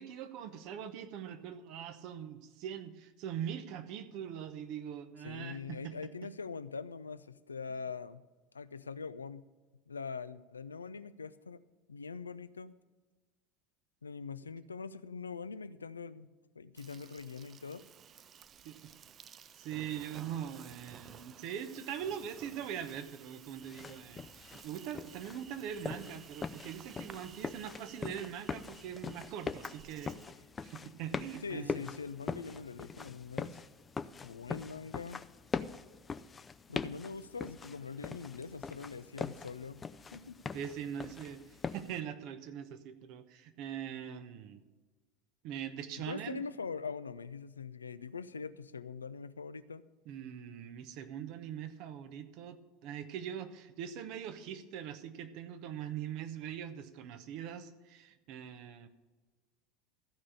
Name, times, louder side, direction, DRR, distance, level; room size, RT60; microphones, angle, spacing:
voice 1, 0.0-6.3 18.6-18.9 19.5-30.2 30.6-31.8 40.5-44.6 45.4-46.4 50.1-58.9, right 9 dB, 55° right, 10 dB, 0.9 m, -42 dB
voice 2, 5.2-8.2 8.5-9.5 9.9-11.6 11.9-12.7 14.0-16.3 16.6-17.8 31.4-33.6 34.2-35.2 36.7-39.8 40.1-40.4 46.0-49.8, left 5 dB, 85° left, 14 dB, 0.4 m, -43 dB
Insect, 16.7-30.3, right 8 dB, 35° right, 0.5 m, -55 dB
sound 1, 23.6-42.0, left 5 dB, 25° left, 0.5 m, -42 dB
14.0 x 5.0 x 8.5 m, 1.3 s
figure-of-eight pair, 75°, 0 cm